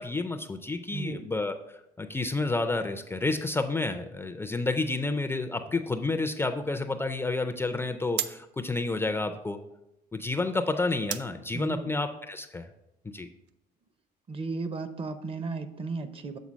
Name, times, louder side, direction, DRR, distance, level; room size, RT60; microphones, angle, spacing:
voice 1, 0.0-1.5 2.0-9.6 10.1-12.7 13.1-13.3, left 3 dB, 15° left, 7 dB, 0.4 m, -30 dB
voice 2, 0.9-1.3 11.5-11.9 14.3-16.4, right 3 dB, 35° right, 11 dB, 0.6 m, -35 dB
sound 1, 5.0-13.6, right 11 dB, 85° right, 0.4 m, -43 dB
7.3 x 3.9 x 5.1 m, 0.86 s
cardioid pair, 110°, 17 cm